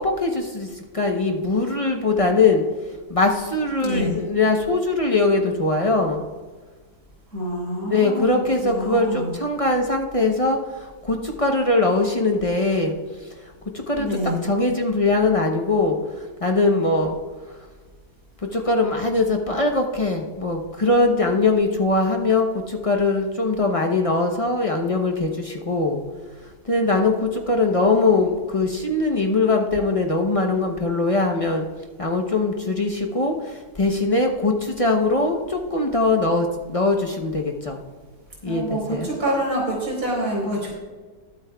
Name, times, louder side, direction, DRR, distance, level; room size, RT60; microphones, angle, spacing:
voice 1, 0.0-2.6 3.1-6.3 7.9-13.0 13.7-17.2 18.5-26.0 26.6-31.7 32.0-37.8 38.4-39.1, left 3 dB, 35° left, 2 dB, 0.6 m, -21 dB
voice 2, 3.8-4.1 7.3-9.3 14.0-14.4 38.4-40.7, right 1 dB, 60° right, -3 dB, 4.4 m, -26 dB
20.5 x 8.6 x 2.3 m, 1.4 s
omnidirectional pair, 1.8 m